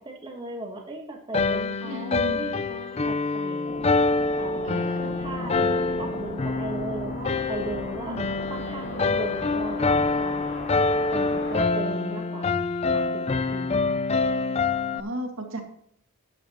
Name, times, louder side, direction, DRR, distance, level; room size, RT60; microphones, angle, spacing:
voice 1, 0.0-3.9 4.4-8.2 8.5-10.3 11.1-14.0, right 2 dB, 25° right, 0 dB, 1.6 m, -37 dB
sound 1, 1.3-15.0, left 3 dB, 30° left, 0.5 m, -26 dB
voice 2, 1.8-2.4 4.6-5.1 8.0-8.3 14.9-15.6, equal, 75° right, 3 dB, 2.1 m, -34 dB
sound 2, 3.6-11.7, left 1 dB, 50° left, 2.0 m, -37 dB
12.0 x 10.5 x 3.1 m, 0.69 s
head